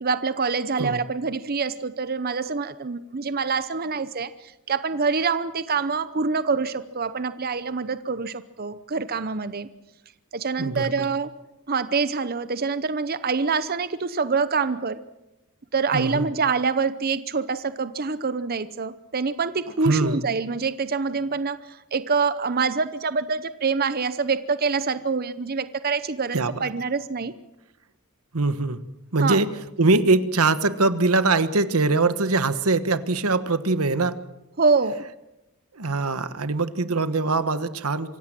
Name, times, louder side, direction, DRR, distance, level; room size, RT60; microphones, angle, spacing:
voice 1, 0.0-9.7 10.3-11.3 11.7-15.0 15.7-27.3 29.2-29.4 34.6-35.0, right 4 dB, 45° right, 13 dB, 0.7 m, -25 dB
voice 2, 10.6-11.1 15.9-16.3 19.8-20.2 26.3-26.7 28.3-28.9 29.1-29.5 29.8-34.2 35.7-38.2, right 3 dB, 90° right, 13 dB, 1.3 m, -22 dB
25.5 x 16.5 x 7.6 m, 0.94 s
head